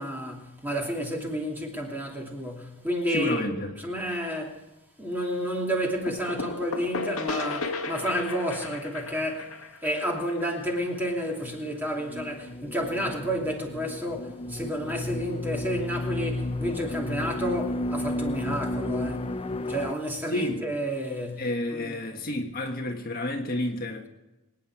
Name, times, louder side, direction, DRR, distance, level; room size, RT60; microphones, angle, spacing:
voice 1, 0.0-4.6 5.0-9.5 9.8-19.3 19.7-21.5 21.7-22.0, equal, 10° right, 2.8 m, -30 dB
voice 2, 3.1-3.8 20.3-20.7 21.4-24.1, left 1 dB, 40° left, 1.6 m, -30 dB
sound 1, 6.1-11.6, left 3 dB, 80° left, 1.9 m, -35 dB
sound 2, 11.4-19.9, left 1 dB, 25° left, 0.4 m, -33 dB
24.5 x 9.8 x 4.8 m
head